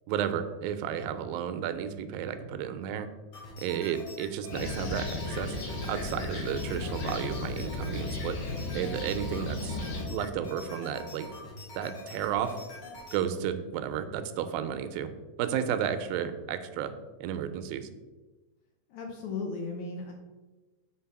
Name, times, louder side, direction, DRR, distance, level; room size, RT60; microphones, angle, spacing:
voice 1, 0.1-3.1 3.6-5.6 5.9-8.4 8.7-9.8 10.1-11.3 11.7-12.6 13.1-15.1 15.4-16.9 17.2-17.9, right 9 dB, 85° right, 10 dB, 2.4 m, -32 dB
sound 1, 3.3-13.2, left 2 dB, 55° left, 2.7 m, -45 dB
Fixed-wing aircraft airplane, 4.5-10.0, left 2 dB, 90° left, 3.1 m, -35 dB
voice 2, 18.9-20.1, left 4 dB, 70° left, 2 dB, 1.9 m, -36 dB
7.3 x 4.1 x 5.7 m, 1.2 s
omnidirectional pair, 4.1 m